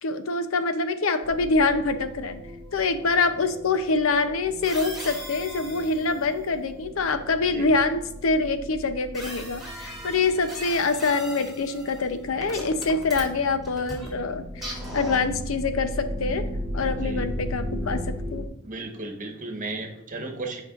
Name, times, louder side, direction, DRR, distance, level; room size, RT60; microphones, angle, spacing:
voice 1, 0.0-2.4 2.7-16.4 16.7-18.5, left 3 dB, 70° left, 9 dB, 0.6 m, -25 dB
sound 1, 1.2-18.5, equal, 25° left, 0.8 m, -37 dB
sound 2, 4.6-6.3 9.1-12.1 12.4-14.1 14.6-15.4, equal, ahead, 2.5 m, -39 dB
voice 2, 18.6-20.6, right 2 dB, 35° right, 3 dB, 1.1 m, -35 dB
10.5 x 5.4 x 2.5 m, 0.77 s
head